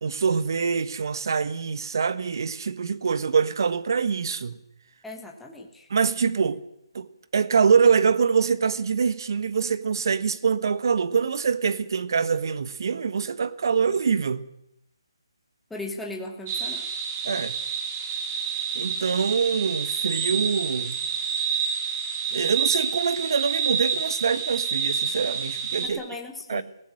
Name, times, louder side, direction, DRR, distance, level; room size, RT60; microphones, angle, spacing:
voice 1, 0.0-4.6 5.9-6.6 6.9-14.5 17.2-17.6 18.7-21.0 22.3-26.0 26.5-26.6, right 6 dB, 50° right, 1.3 m, -24 dB
voice 2, 5.0-5.9 15.7-16.8 25.8-26.6, left 2 dB, 5° left, 1.5 m, -37 dB
sound 1, 16.5-25.9, right 6 dB, 20° right, 2.3 m, -28 dB
17.0 x 15.5 x 9.8 m
hypercardioid pair, 170°, 3 cm